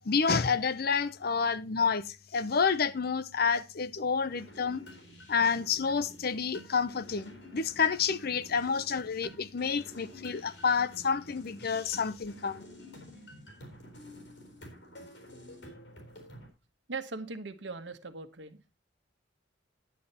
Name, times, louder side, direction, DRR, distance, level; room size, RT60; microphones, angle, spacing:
voice 1, 0.1-4.8 5.3-12.6, left 5 dB, 55° left, 0.7 m, -29 dB
sound 1, 4.3-16.5, left 1 dB, 80° left, 4.1 m, -50 dB
voice 2, 16.9-18.8, right 3 dB, 75° right, 1.3 m, -40 dB
10.0 x 8.6 x 4.2 m
head